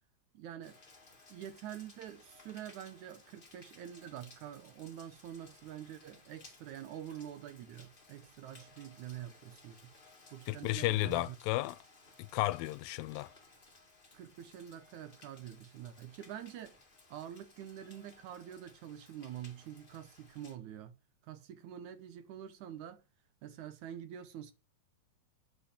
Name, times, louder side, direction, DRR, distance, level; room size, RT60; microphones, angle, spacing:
voice 1, 0.3-0.8 1.3-10.0 10.3-11.4 14.1-16.8 17.1-21.0 21.2-23.0 23.4-24.5, right 10 dB, 70° right, 2.0 m, -46 dB
Rain, 0.6-20.6, left 3 dB, 20° left, 1.7 m, -60 dB
voice 2, 10.5-11.8 12.2-13.3, left 18 dB, 90° left, 2.4 m, -33 dB
8.7 x 7.9 x 5.0 m
omnidirectional pair, 4.0 m